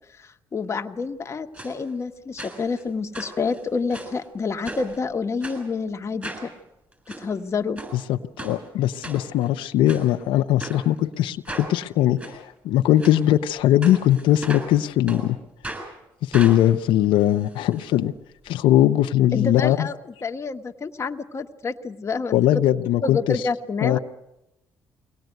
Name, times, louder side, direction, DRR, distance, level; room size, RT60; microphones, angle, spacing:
voice 1, 0.2-6.5 7.2-7.8 19.3-22.4 23.0-24.0, left 4 dB, 35° left, 6 dB, 1.3 m, -28 dB
sound 1, 1.5-1.7 2.4-2.8 3.1-4.2 4.6-5.0 5.4-5.6 6.2-6.5 6.9-7.2 7.8-7.9 8.4-8.5 9.0-9.5 9.9-10.0 10.6-10.8 11.4-11.7 12.2-12.3 13.0-13.2 13.8-14.7 15.1-15.2 15.6-15.9 16.3-17.9 18.2-18.3 18.5-18.6, right 2 dB, 15° right, 7.6 m, -36 dB
voice 2, 7.9-15.4 16.2-18.1 18.4-19.9 22.3-23.4 23.8-24.0, left 12 dB, 85° left, 7 dB, 0.8 m, -20 dB
23.0 x 18.5 x 9.3 m, 0.93 s
cardioid pair, 90°, 8 cm